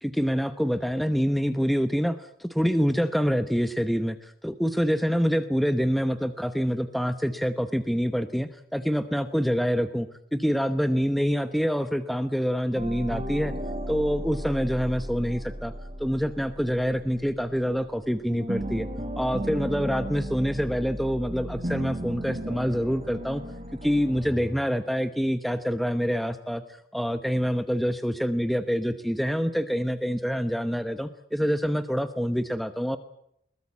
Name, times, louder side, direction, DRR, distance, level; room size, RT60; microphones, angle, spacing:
voice 1, 0.0-2.3 2.6-13.5 13.9-15.7 16.0-18.9 19.2-23.4 23.8-26.6 26.9-33.0, equal, ahead, 10 dB, 0.9 m, -26 dB
sound 1, 12.7-18.0 18.3-24.6, right 1 dB, 35° right, 4.0 m, -35 dB
22.0 x 20.5 x 8.5 m, 0.73 s
head